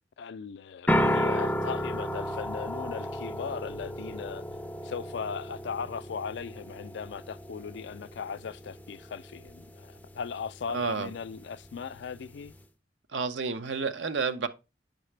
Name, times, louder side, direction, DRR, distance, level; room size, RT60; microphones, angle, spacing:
voice 1, 0.2-4.4 4.8-12.5, left 6 dB, 65° left, 0.4 m, -38 dB
sound 1, 0.9-12.6, equal, 10° left, 0.5 m, -34 dB
voice 2, 10.7-11.1 13.1-14.5, right 5 dB, 75° right, 0.7 m, -30 dB
8.8 x 5.7 x 3.3 m
head